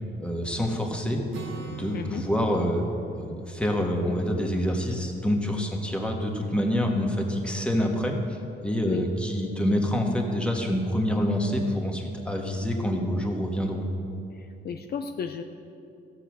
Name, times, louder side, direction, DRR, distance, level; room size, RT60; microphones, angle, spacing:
voice 1, 0.2-1.2 1.7-2.8 3.1-13.9, equal, 5° left, 0 dB, 1.7 m, -27 dB
Acoustic guitar, 1.3-5.0, right 5 dB, 70° right, 1.4 m, -42 dB
voice 2, 14.3-15.4, left 7 dB, 50° left, 6 dB, 0.6 m, -34 dB
14.5 x 6.9 x 6.3 m, 2.7 s
cardioid pair, 90°, 20 cm